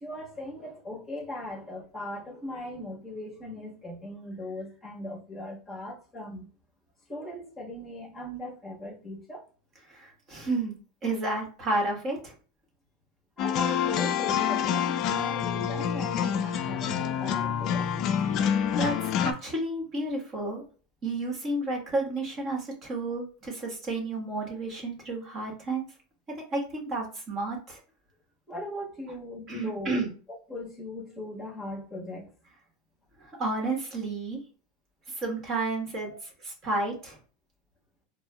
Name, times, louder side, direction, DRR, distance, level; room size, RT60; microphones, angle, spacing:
voice 1, 0.0-6.5 7.1-9.5 13.4-17.9 28.5-30.0 30.5-32.3 36.0-36.2, left 1 dB, 10° left, 1.3 m, -38 dB
voice 2, 9.9-12.3 18.3-20.6 21.0-25.9 26.3-27.8 29.5-30.1 33.2-34.4 35.2-36.1 36.4-37.2, right 2 dB, 30° right, 1.3 m, -31 dB
sound 1, 13.4-19.3, left 8 dB, 40° left, 0.4 m, -27 dB
4.4 x 2.1 x 2.3 m
supercardioid pair, 140°, 0 cm